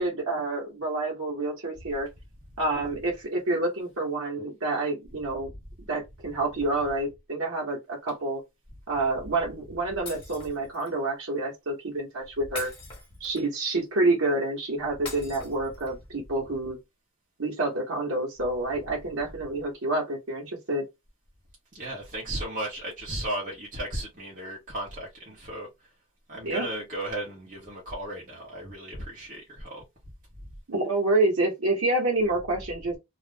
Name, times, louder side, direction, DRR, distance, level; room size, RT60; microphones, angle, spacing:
voice 1, 0.0-2.1 2.6-5.5 5.9-8.4 8.9-12.7 13.2-16.8 17.4-20.8 26.4-26.7 30.7-33.0, right 2 dB, 80° right, 1.0 m, -28 dB
Shatter, 10.1-10.9 12.5-13.6 15.1-16.1, left 3 dB, 25° left, 1.1 m, -42 dB
voice 2, 21.7-25.9 26.3-29.8, right 1 dB, 40° right, 0.9 m, -35 dB
2.4 x 2.0 x 3.2 m
head